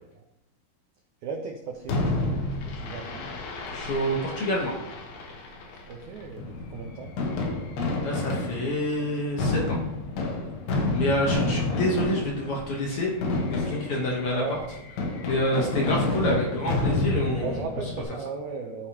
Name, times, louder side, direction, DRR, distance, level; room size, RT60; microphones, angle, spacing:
voice 1, 1.2-3.3 5.9-7.2 11.4-11.6 14.3-14.6 15.5-16.0 16.3-16.5 17.4-18.9, right 5 dB, 90° right, 1 dB, 1.6 m, -36 dB
Fireworks, 1.9-18.0, left 2 dB, 85° left, 3.3 m, -30 dB
voice 2, 3.7-4.7 8.0-9.8 10.9-13.1 13.5-14.4 15.2-17.6, left 1 dB, 70° left, -2 dB, 1.3 m, -27 dB
14.5 x 4.9 x 2.9 m, 0.88 s
omnidirectional pair, 4.4 m